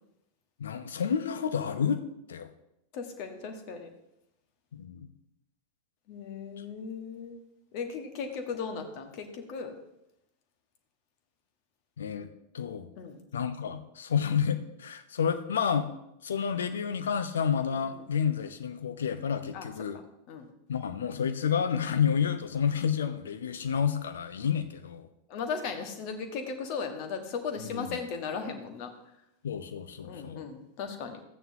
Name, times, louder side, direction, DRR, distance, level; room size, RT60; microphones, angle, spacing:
voice 1, 0.6-2.5 4.7-5.1 6.6-6.7 12.0-12.3 12.5-12.9 13.3-15.9 16.2-20.0 20.7-25.1 27.6-28.0 29.4-30.4, left 7 dB, 65° left, 10 dB, 0.8 m, -30 dB
voice 2, 2.9-3.9 6.1-7.4 7.7-9.7 13.0-13.2 17.9-18.1 19.5-19.7 20.3-20.5 25.3-28.9 30.0-31.2, left 5 dB, 45° left, 5 dB, 1.5 m, -37 dB
13.5 x 9.1 x 2.8 m, 0.84 s
figure-of-eight pair, 90°, 0 cm